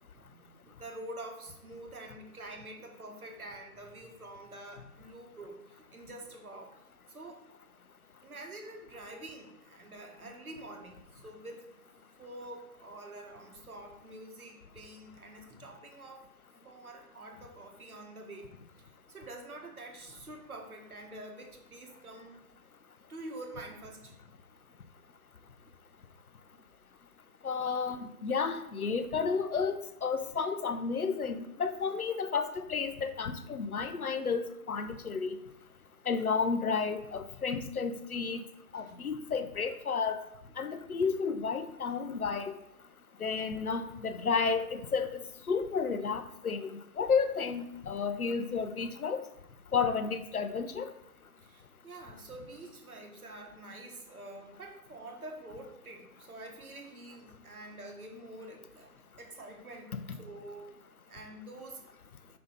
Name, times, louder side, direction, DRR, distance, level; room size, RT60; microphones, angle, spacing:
voice 1, 0.1-7.4 8.2-11.7 12.2-16.2 16.6-22.4 23.1-24.1 28.3-28.4 30.3-30.4 33.7-33.8 34.9-35.0 38.7-39.1 51.4-58.9 59.2-60.8 61.1-61.8, right 1 dB, 70° right, 3 dB, 1.6 m, -47 dB
voice 2, 27.4-35.3 36.1-38.4 38.7-40.2 40.6-42.5 43.2-46.7 47.0-49.3 49.7-50.9 60.1-60.2, left 5 dB, 70° left, 10 dB, 0.8 m, -32 dB
5.6 x 5.5 x 4.0 m, 0.85 s
figure-of-eight pair, 155°, 45 cm